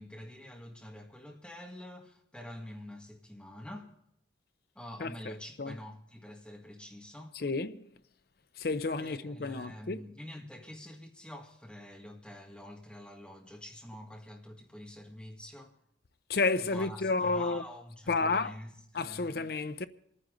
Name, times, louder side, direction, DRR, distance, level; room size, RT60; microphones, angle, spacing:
voice 1, 0.0-3.9 4.8-7.4 9.0-15.7 16.6-19.4, left 1 dB, 5° left, 1.8 m, -46 dB
voice 2, 5.0-5.3 5.6-5.8 7.3-7.8 8.6-10.0 16.3-17.6 18.1-18.5 18.9-19.9, left 3 dB, 55° left, 0.6 m, -31 dB
27.5 x 9.9 x 3.8 m
head